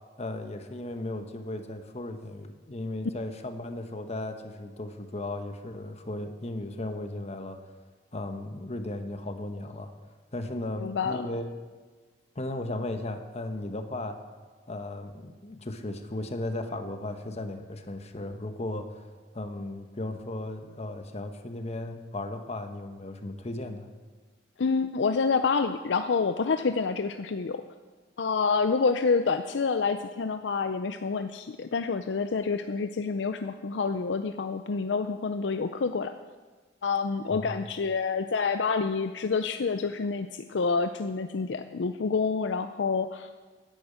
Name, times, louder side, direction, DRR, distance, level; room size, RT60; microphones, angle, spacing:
voice 1, 0.2-7.6 8.1-9.9 10.3-11.5 12.3-14.2 14.7-19.1 19.3-23.9 37.3-37.7, left 2 dB, 40° left, 7 dB, 1.1 m, -36 dB
voice 2, 10.8-11.2 24.6-27.6 28.2-36.1 36.8-43.3, left 4 dB, 85° left, 9 dB, 0.5 m, -28 dB
10.5 x 8.7 x 9.1 m, 1.4 s
head